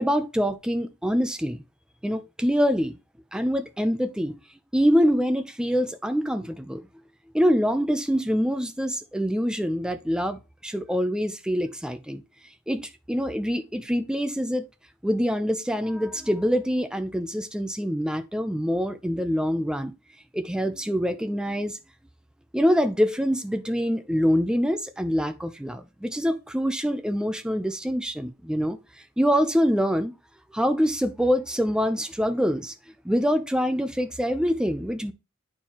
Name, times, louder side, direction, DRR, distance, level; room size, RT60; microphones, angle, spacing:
voice 1, 0.0-1.6 2.0-3.0 3.3-4.3 4.7-6.8 7.3-12.2 12.7-14.7 15.0-19.9 20.3-21.8 22.5-28.8 29.2-30.1 30.5-32.7 33.0-35.1, equal, 5° right, 0.5 m, -25 dB
9.0 x 4.5 x 2.9 m
head